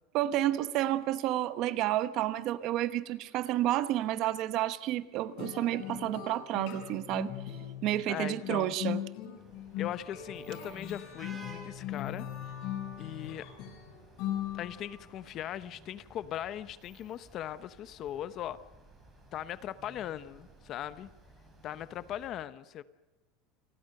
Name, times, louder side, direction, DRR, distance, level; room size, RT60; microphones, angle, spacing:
voice 1, 0.1-7.3 7.8-9.0, right 14 dB, 40° right, 14 dB, 1.1 m, -30 dB
sound 1, 5.4-15.0, left 11 dB, 50° left, 7.8 m, -39 dB
voice 2, 8.1-8.8 9.8-12.3 13.0-13.5 14.5-18.6 19.3-21.1 21.6-22.8, left 11 dB, 30° left, 15 dB, 0.8 m, -39 dB
sound 2, 9.3-22.3, right 1 dB, 10° right, 6.5 m, -56 dB
28.5 x 21.0 x 6.6 m, 1.1 s
supercardioid pair, 170°, 0 cm